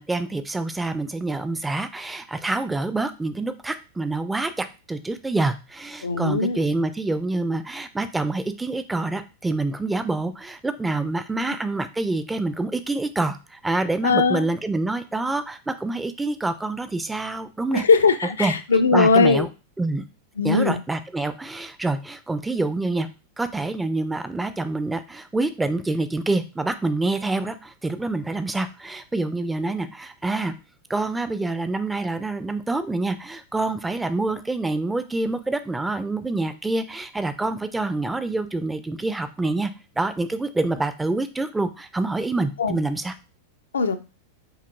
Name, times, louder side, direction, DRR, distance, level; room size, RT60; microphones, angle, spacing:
voice 1, 0.0-17.8 18.4-18.5 18.9-19.5 19.8-20.0 20.4-23.1 23.4-30.5 30.9-39.7 40.0-43.1, right 2 dB, 10° right, 11 dB, 0.3 m, -26 dB
voice 2, 6.0-6.6 14.0-14.4 17.7-19.5 20.4-20.8 42.6-42.8 43.7-44.0, left 4 dB, 70° left, 9 dB, 0.3 m, -19 dB
4.8 x 2.8 x 2.2 m, 0.31 s
figure-of-eight pair, 90°, 0 cm